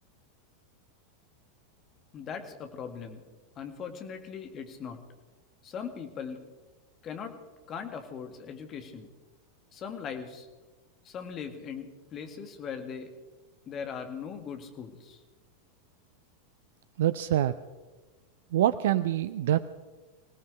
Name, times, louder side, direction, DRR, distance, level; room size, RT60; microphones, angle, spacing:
voice 1, 2.1-3.2 3.6-5.0 5.6-6.4 7.0-7.4 7.7-9.1 9.7-10.5 11.0-13.1 13.7-15.2, left 6 dB, 30° left, 6 dB, 1.9 m, -39 dB
voice 2, 17.0-17.5 18.5-19.6, right 12 dB, 60° right, 15 dB, 0.5 m, -25 dB
25.0 x 17.5 x 3.3 m, 1.3 s
figure-of-eight pair, 85°, 0 cm